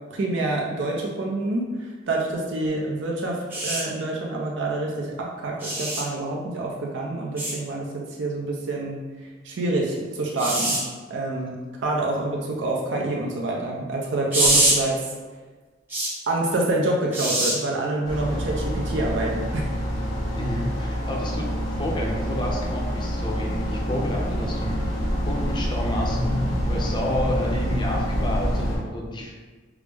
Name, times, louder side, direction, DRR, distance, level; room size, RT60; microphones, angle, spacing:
voice 1, 0.1-9.0 9.4-10.8 11.1-15.0 16.3-19.7, right 2 dB, 70° right, -1 dB, 0.5 m, -27 dB
sound 1, 3.5-3.8 5.6-6.0 7.4-7.5 10.4-10.8 14.3-14.8 15.9-16.1 17.1-17.5 19.0-19.2, right 1 dB, 10° right, 0.8 m, -23 dB
voice 2, 14.4-14.7 20.4-21.5 21.8-25.0 25.3-29.3, left 1 dB, 25° left, -1 dB, 0.5 m, -30 dB
sound 2, 18.0-28.8, equal, 85° left, 1.1 m, -27 dB
4.7 x 2.0 x 3.3 m, 1.4 s
head